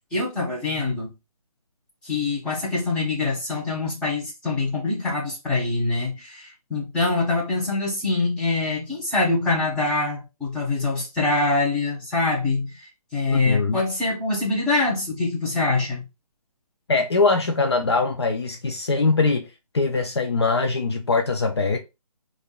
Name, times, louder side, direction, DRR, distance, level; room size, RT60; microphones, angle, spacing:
voice 1, 0.1-1.1 2.0-12.7 13.1-16.0, left 3 dB, 5° left, 0.9 m, -24 dB
voice 2, 13.3-13.8 16.9-19.5 19.7-21.8, left 3 dB, 45° left, 0.5 m, -22 dB
5.0 x 2.5 x 2.3 m
figure-of-eight pair, 150°, 20 cm